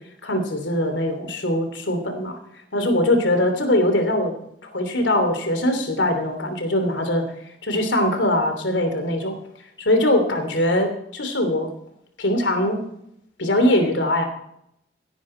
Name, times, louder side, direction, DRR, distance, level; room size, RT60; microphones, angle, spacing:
voice 1, 0.2-2.4 2.7-4.3 4.6-7.2 7.6-9.3 9.8-11.7 12.2-12.8 13.4-14.2, left 1 dB, 80° left, 6 dB, 3.0 m, -21 dB
17.5 x 10.0 x 4.4 m, 0.77 s
head